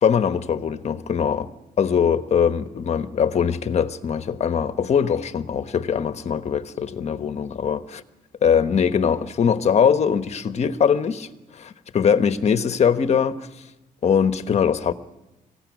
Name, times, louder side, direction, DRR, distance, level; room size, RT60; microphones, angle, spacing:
voice 1, 0.0-1.5 1.8-8.0 8.4-11.3 11.5-13.4 14.0-14.9, left 7 dB, 45° left, 1.2 m, -21 dB
23.5 x 16.5 x 9.5 m
cardioid pair, 130°, 15 cm